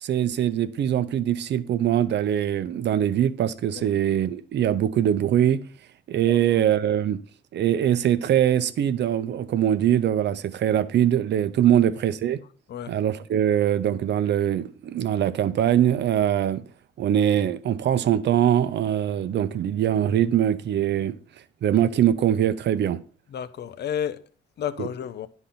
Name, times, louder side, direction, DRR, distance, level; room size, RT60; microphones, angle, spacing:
voice 1, 0.0-5.6 6.1-7.2 7.5-12.4 12.9-16.6 17.0-21.2 21.6-23.0 24.8-24.9, right 10 dB, 60° right, 0.7 m, -22 dB
voice 2, 23.3-24.2 24.6-25.3, left 9 dB, 55° left, 0.7 m, -31 dB
10.0 x 4.0 x 5.6 m
cardioid pair, 90°, 20 cm